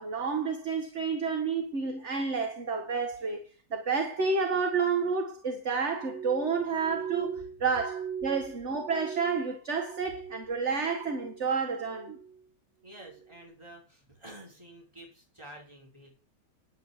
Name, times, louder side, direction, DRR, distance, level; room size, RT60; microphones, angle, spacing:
voice 1, 0.0-3.4 3.7-12.2, right 5 dB, 40° right, 1.9 m, -30 dB
Glass, 5.9-10.5 10.8-11.5 11.9-12.4 13.0-13.3, right 7 dB, 60° right, 3.5 m, -40 dB
voice 2, 12.8-16.1, right 1 dB, 15° right, 5.4 m, -50 dB
10.5 x 9.4 x 8.2 m
omnidirectional pair, 1.9 m